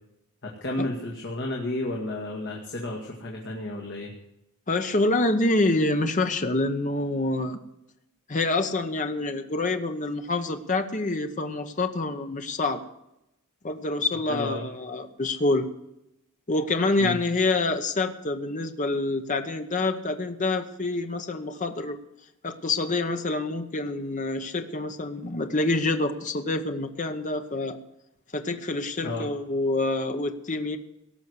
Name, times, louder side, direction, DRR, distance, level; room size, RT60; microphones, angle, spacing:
voice 1, 0.4-4.1 14.3-14.6 17.0-17.2 29.0-29.3, left 1 dB, 50° left, -1 dB, 2.0 m, -32 dB
voice 2, 4.7-7.6 8.3-12.8 13.6-15.7 16.5-22.0 22.4-27.8 28.3-30.8, left 2 dB, 35° left, 7 dB, 0.9 m, -27 dB
17.5 x 6.4 x 8.1 m, 0.85 s
head